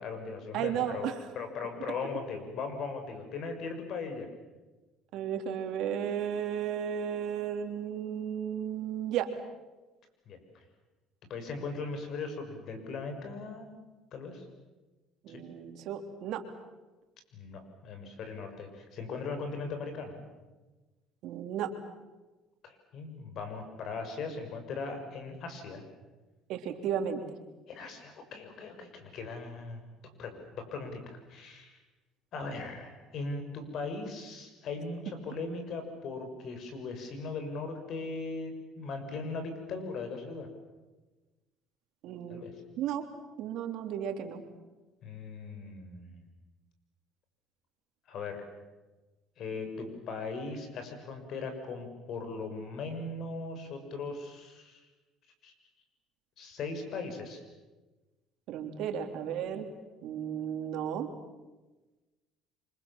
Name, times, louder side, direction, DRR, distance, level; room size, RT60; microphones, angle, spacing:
voice 1, 0.0-4.3 10.3-10.4 11.3-13.8 14.1-14.5 15.3-15.4 17.3-20.3 22.6-25.8 27.7-29.8 30.2-31.8 32.3-40.5 42.3-42.5 45.0-46.3 48.1-48.5 49.4-54.8 55.4-55.5 56.4-57.4, left 4 dB, 55° left, 7 dB, 6.6 m, -39 dB
voice 2, 0.5-1.2 5.1-9.3 15.2-16.4 21.2-21.7 26.5-27.2 42.0-42.4 42.8-43.0 43.4-44.4 58.5-59.7 60.0-61.1, right 9 dB, 65° right, 5 dB, 3.4 m, -34 dB
28.0 x 25.5 x 7.5 m, 1.2 s
cardioid pair, 105°, 0 cm